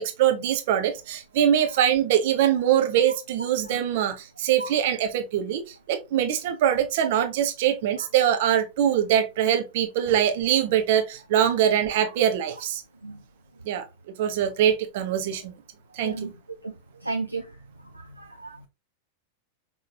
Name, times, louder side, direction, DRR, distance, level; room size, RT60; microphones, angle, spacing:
voice 1, 0.0-12.8 13.6-13.9 14.2-15.5 15.9-16.3, right 10 dB, 50° right, 0.8 m, -23 dB
voice 2, 16.0-16.3 16.6-16.7 17.0-17.5 17.9-18.6, right 3 dB, 85° right, 0.6 m, -33 dB
5.8 x 3.1 x 2.7 m
figure-of-eight pair, 90°, 0 cm